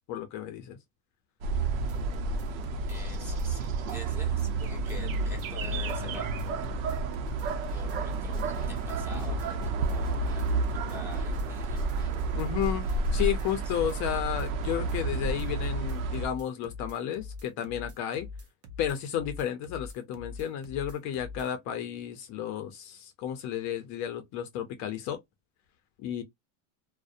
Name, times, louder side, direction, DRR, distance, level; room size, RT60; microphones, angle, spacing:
voice 1, 0.1-0.8 12.3-12.9 13.1-18.3 18.8-25.2 26.0-26.2, left 10 dB, 45° left, 0.5 m, -32 dB
sound 1, 1.4-16.3, right 3 dB, 90° right, 0.7 m, -31 dB
sound 2, 1.6-21.5, left 4 dB, 40° right, 0.7 m, -43 dB
voice 2, 2.9-6.8 7.7-12.0 13.7-13.8, equal, 5° right, 0.8 m, -47 dB
Snare drum, 7.3-14.1, right 1 dB, 10° left, 1.2 m, -44 dB
2.5 x 2.1 x 2.4 m
supercardioid pair, 135°, 40 cm